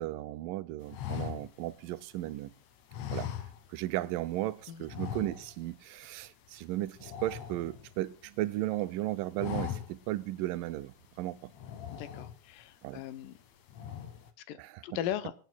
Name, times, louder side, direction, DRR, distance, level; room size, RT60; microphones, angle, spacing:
voice 1, 0.0-2.5 3.1-3.3 3.7-11.5 12.8-13.0 14.6-14.8, right 16 dB, 90° right, 2.3 m, -35 dB
sound 1, 0.9-2.4 2.9-4.0 4.3-4.4 4.9-5.8 6.0-6.2 6.5-8.3 8.7-9.0 9.3-10.2 10.6-10.7 11.5-12.6 13.1-13.4 13.7-14.3, left 9 dB, 65° left, 2.2 m, -40 dB
voice 2, 11.9-13.4 14.5-14.6 14.8-15.3, left 11 dB, 90° left, 2.5 m, -37 dB
25.5 x 9.3 x 2.3 m
omnidirectional pair, 3.8 m